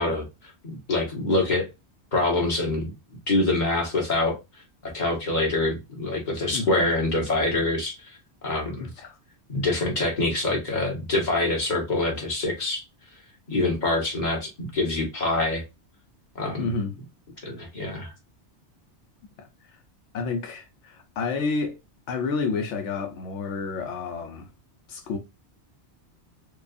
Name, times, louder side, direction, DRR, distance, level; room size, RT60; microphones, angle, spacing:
voice 1, 0.0-1.7 2.1-2.9 3.3-4.4 4.8-8.2 8.4-8.9 9.5-12.8 13.5-15.6 16.3-16.7 17.4-18.1, left 2 dB, 40° left, 1.5 m, -25 dB
voice 2, 6.5-6.8 8.8-9.2 16.6-16.9 19.4-19.8 20.1-21.8 22.1-24.5 24.9-25.2, left 4 dB, 85° left, 0.9 m, -30 dB
4.6 x 2.4 x 2.4 m
omnidirectional pair, 1.2 m